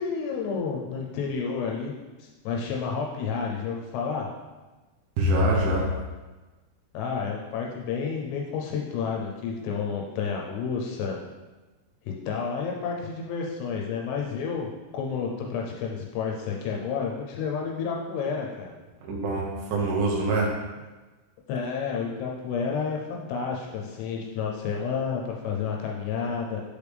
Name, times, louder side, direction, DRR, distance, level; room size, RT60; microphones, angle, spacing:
voice 1, 0.0-1.9 2.2-4.3 6.9-11.2 12.0-18.7 21.5-26.6, left 5 dB, 80° left, -1 dB, 2.8 m, -30 dB
voice 2, 5.2-5.9 19.0-20.5, right 1 dB, 70° right, -3 dB, 2.4 m, -24 dB
6.7 x 5.0 x 3.4 m, 1.2 s
omnidirectional pair, 4.9 m